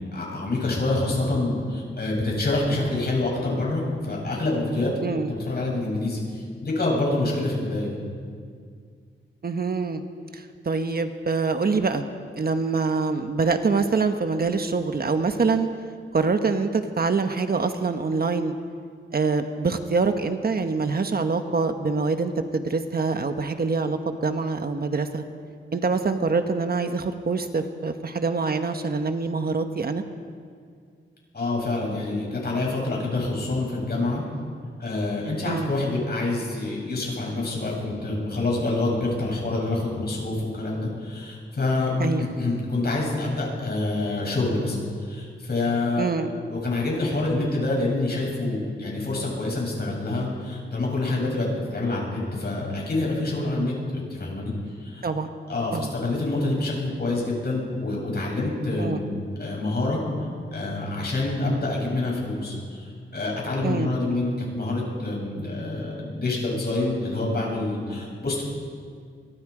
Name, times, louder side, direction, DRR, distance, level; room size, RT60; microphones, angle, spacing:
voice 1, 0.1-4.9 5.3-8.0 31.3-34.2 34.8-41.9 42.2-46.1 46.5-54.5 54.8-55.0 55.5-60.0 60.5-68.4, left 2 dB, 50° left, -2 dB, 7.9 m, -27 dB
voice 2, 5.0-5.3 9.4-10.0 10.3-12.1 12.4-15.7 16.1-18.6 19.1-25.2 25.7-30.0 35.4-35.7 42.0-42.3 46.0-46.3 55.0-55.3 55.7-55.9 58.8-59.0 63.6-63.9, right 4 dB, 45° right, 7 dB, 1.2 m, -25 dB
24.5 x 23.5 x 5.0 m, 2.1 s
cardioid pair, 90°, 21 cm